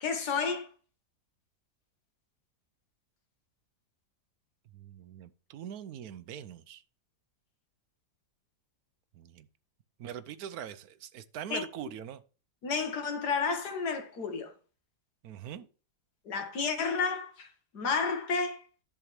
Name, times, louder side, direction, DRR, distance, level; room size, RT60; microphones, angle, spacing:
voice 1, 0.0-0.7 11.5-11.6 12.6-14.5 16.3-17.5 17.7-18.6, left 5 dB, 85° left, 2.0 m, -31 dB
voice 2, 4.7-6.8 9.1-9.5 10.0-12.2 15.2-15.7, right 9 dB, 75° right, 1.1 m, -42 dB
10.5 x 6.9 x 3.2 m
omnidirectional pair, 1.7 m